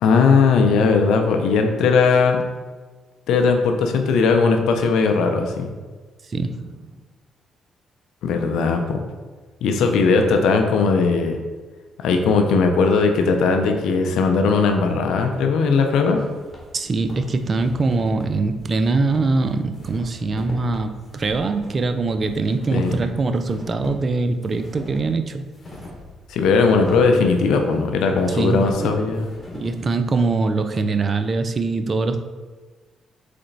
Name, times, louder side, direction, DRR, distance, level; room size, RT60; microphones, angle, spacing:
voice 1, 0.0-2.4 3.3-5.7 8.2-9.0 9.6-11.4 12.0-16.2 22.7-23.0 26.3-29.3, left 4 dB, 80° left, 4 dB, 0.5 m, -18 dB
voice 2, 6.3-6.9 16.7-25.5 28.4-28.8 29.5-32.2, right 3 dB, 45° right, 8 dB, 0.4 m, -23 dB
sound 1, 16.0-29.8, left 1 dB, 40° left, 1.4 m, -40 dB
3.9 x 3.4 x 3.9 m, 1.4 s
supercardioid pair, 65°, 0 cm